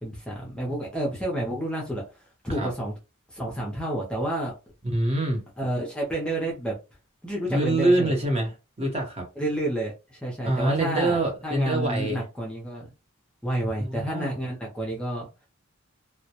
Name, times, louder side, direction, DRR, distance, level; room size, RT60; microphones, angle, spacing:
voice 1, 0.0-2.9 3.3-4.5 5.6-6.7 7.2-8.1 9.4-12.9 13.4-15.3, right 1 dB, 5° left, 0.5 m, -30 dB
voice 2, 4.8-5.4 7.5-9.2 10.4-12.2 13.8-14.3, right 1 dB, 30° right, 0.8 m, -25 dB
2.2 x 2.1 x 2.8 m
head